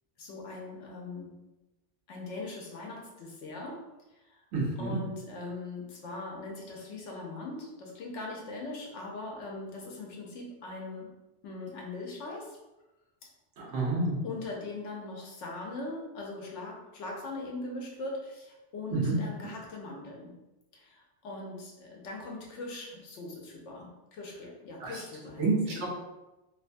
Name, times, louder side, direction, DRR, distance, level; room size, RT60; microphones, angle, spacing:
voice 1, 0.2-1.4 2.1-3.8 4.1-4.4 4.8-11.1 11.4-12.6 13.2-13.3 13.6-13.7 14.2-20.4 20.7-25.9, left 2 dB, 85° left, -1 dB, 1.0 m, -41 dB
voice 2, 4.5-5.0 13.6-14.2 18.9-19.1 24.8-24.9 25.4-25.9, right 3 dB, 85° right, -3 dB, 1.1 m, -29 dB
2.9 x 2.2 x 2.5 m, 1.0 s
omnidirectional pair, 1.2 m